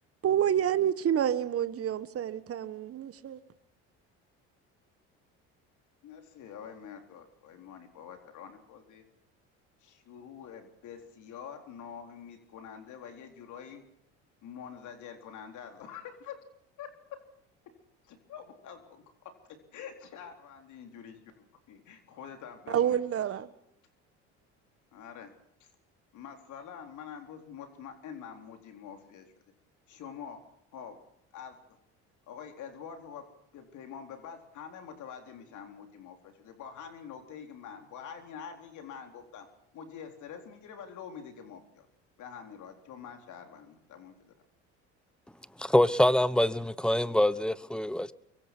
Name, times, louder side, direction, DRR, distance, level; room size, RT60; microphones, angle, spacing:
voice 1, 0.2-3.4 22.7-23.5, right 10 dB, 45° right, 1.5 m, -28 dB
voice 2, 6.0-9.0 9.8-13.8 14.4-16.4 16.8-16.9 18.0-19.0 19.7-23.0 24.9-25.3 25.6-25.7 26.1-29.3 29.9-30.4 30.7-31.0 31.3-31.6 32.3-33.2 33.5-39.5 39.7-41.9 42.2-44.3, left 7 dB, 60° left, 4.1 m, -46 dB
voice 3, 45.6-48.1, left 1 dB, 5° left, 1.1 m, -25 dB
24.0 x 23.0 x 6.2 m
supercardioid pair, 80°, 33 cm